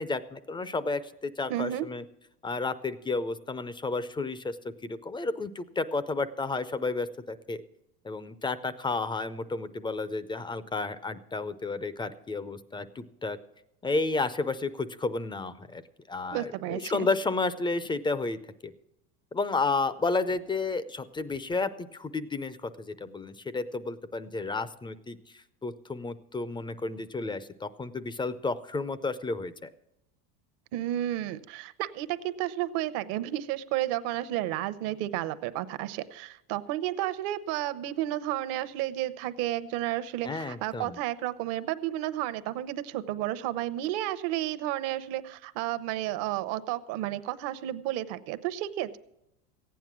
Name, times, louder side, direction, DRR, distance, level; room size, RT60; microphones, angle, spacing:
voice 1, 0.0-2.0 2.4-4.6 4.8-7.6 8.0-13.4 13.8-15.8 16.1-18.7 19.3-25.2 25.6-29.7 40.2-41.0, left 3 dB, 10° left, 15 dB, 0.4 m, -32 dB
voice 2, 1.5-1.9 16.3-17.1 30.7-49.0, right 14 dB, 60° right, 12 dB, 0.9 m, -32 dB
15.0 x 9.3 x 6.1 m, 0.85 s
hypercardioid pair, 100°, 46 cm